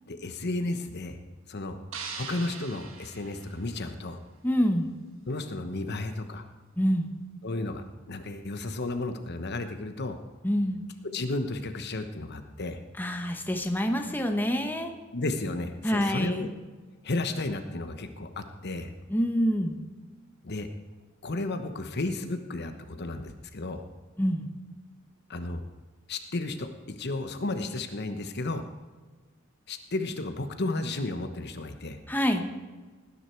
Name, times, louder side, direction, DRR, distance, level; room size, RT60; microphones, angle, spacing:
voice 1, 0.1-1.2 1.5-1.8 2.2-4.2 5.3-6.5 7.4-10.2 11.0-12.8 15.1-16.5 17.0-18.9 20.4-20.7 21.2-23.8 25.3-25.6 26.1-26.7 27.0-28.6 29.7-32.0, left 2 dB, 55° left, 8 dB, 1.1 m, -33 dB
sound 1, 1.9-4.2, right 5 dB, 75° right, 1.6 m, -42 dB
voice 2, 4.4-4.9 6.8-7.1 10.4-10.8 13.0-14.9 15.8-16.5 19.1-19.7 24.2-24.5 32.1-32.5, equal, 10° left, 5 dB, 1.1 m, -26 dB
18.5 x 10.0 x 4.6 m, 1.3 s
head